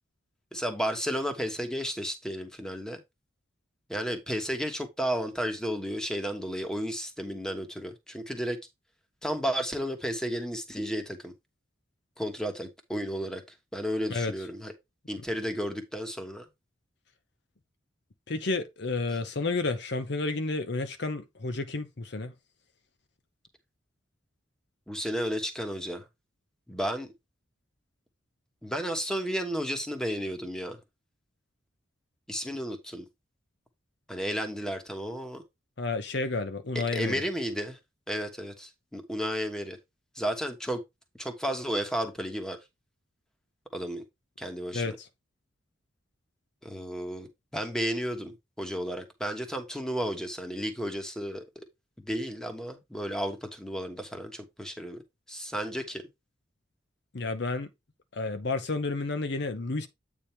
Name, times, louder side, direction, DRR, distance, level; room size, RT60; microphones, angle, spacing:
voice 1, 0.5-3.0 3.9-8.6 9.2-11.3 12.2-13.4 13.7-14.7 15.1-16.4 24.9-26.0 26.7-27.1 28.6-30.8 32.3-33.0 34.1-35.4 36.7-37.8 38.1-39.8 40.1-40.8 41.2-42.6 43.7-44.0 44.4-44.8 46.6-47.3 47.5-48.3 48.6-51.4 52.0-55.0 55.3-56.1, equal, 5° left, 1.2 m, -33 dB
voice 2, 18.3-22.3 35.8-37.2 44.7-45.1 57.1-57.7 58.1-59.9, left 3 dB, 60° left, 0.8 m, -31 dB
8.6 x 3.5 x 4.4 m
head